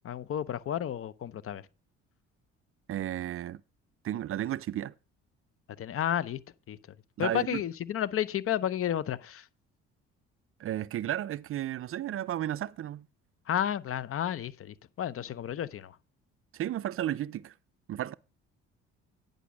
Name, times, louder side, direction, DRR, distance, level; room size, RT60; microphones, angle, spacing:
voice 1, 0.0-1.6 5.8-6.4 6.7-6.8 7.2-9.5 13.5-16.0, left 10 dB, 45° left, 0.7 m, -32 dB
voice 2, 2.9-3.6 4.0-4.9 7.2-7.6 10.6-13.1 16.5-17.5 17.9-18.1, right 12 dB, 45° right, 0.4 m, -33 dB
10.0 x 5.3 x 6.0 m
hypercardioid pair, 60°, 30 cm